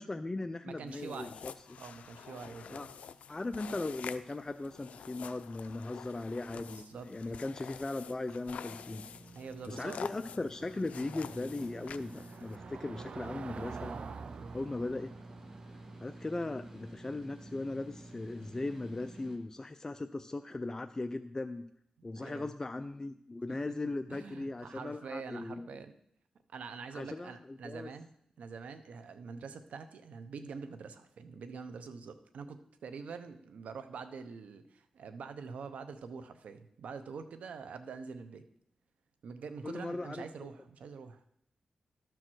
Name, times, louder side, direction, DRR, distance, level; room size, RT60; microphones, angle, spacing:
voice 1, 0.0-1.5 2.7-2.9 3.3-9.0 9.7-14.0 14.5-15.1 16.0-21.6 22.0-25.7 26.9-27.9 39.6-40.2, left 2 dB, 25° left, 8 dB, 0.4 m, -38 dB
voice 2, 0.6-1.4 1.8-2.8 6.7-7.1 9.3-10.0 14.3-14.6 22.0-22.5 23.5-23.6 24.1-25.9 26.5-28.1 28.4-38.5 39.2-41.2, right 5 dB, 85° right, 10 dB, 0.8 m, -45 dB
sound 1, 0.9-12.6, left 7 dB, 90° left, 0.4 m, -48 dB
Car passing by / Engine, 8.6-19.1, right 5 dB, 60° right, 0.4 m, -49 dB
sound 2, 8.7-19.4, right 1 dB, 25° right, 1.5 m, -51 dB
12.5 x 4.6 x 6.2 m, 0.71 s
cardioid pair, 80°, 2 cm